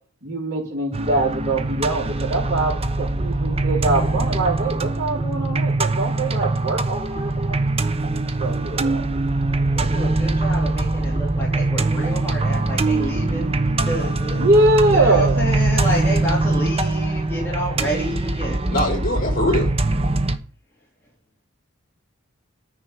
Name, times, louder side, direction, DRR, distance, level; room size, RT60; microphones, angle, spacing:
voice 1, 0.2-7.6 8.4-9.1 14.4-15.6, right 2 dB, 55° right, 4.0 m, -22 dB
sound 1, 0.9-20.4, right 2 dB, 30° right, 0.9 m, -22 dB
voice 2, 9.7-13.5 13.8-14.5 14.9-18.7, equal, 10° left, 3.1 m, -29 dB
voice 3, 18.7-19.7, left 1 dB, 45° left, 5.1 m, -22 dB
9.9 x 5.6 x 8.4 m
head